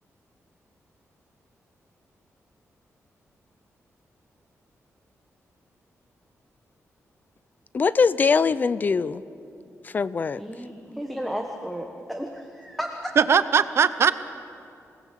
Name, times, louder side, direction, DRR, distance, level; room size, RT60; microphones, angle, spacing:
voice 1, 7.7-9.2 9.9-10.4, left 5 dB, 35° left, 17 dB, 0.5 m, -22 dB
voice 2, 10.4-13.2, equal, ahead, 3 dB, 1.3 m, -33 dB
voice 3, 13.2-14.1, right 7 dB, 55° right, 13 dB, 0.8 m, -19 dB
28.0 x 18.5 x 7.6 m, 2.6 s
wide cardioid pair, 160°, 5 cm